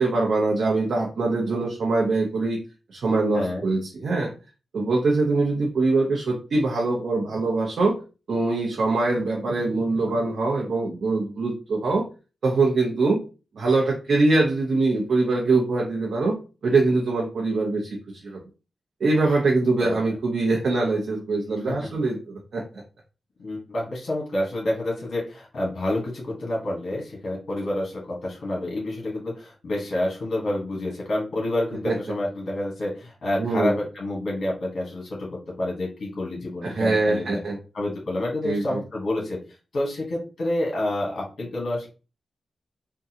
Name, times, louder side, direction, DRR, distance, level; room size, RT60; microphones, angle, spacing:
voice 1, 0.0-2.6 2.9-4.3 4.7-8.0 8.3-12.0 12.4-13.2 13.5-16.4 16.6-18.0 18.2-18.4 19.0-22.6 31.8-32.0 33.4-33.7 36.6-37.6 38.4-38.8, right 3 dB, 75° right, -2 dB, 0.8 m, -23 dB
voice 2, 23.4-37.4 37.7-39.4 39.7-41.9, left 1 dB, 65° left, -3 dB, 1.2 m, -28 dB
3.7 x 2.2 x 2.8 m, 0.33 s
cardioid pair, 70°, 0 cm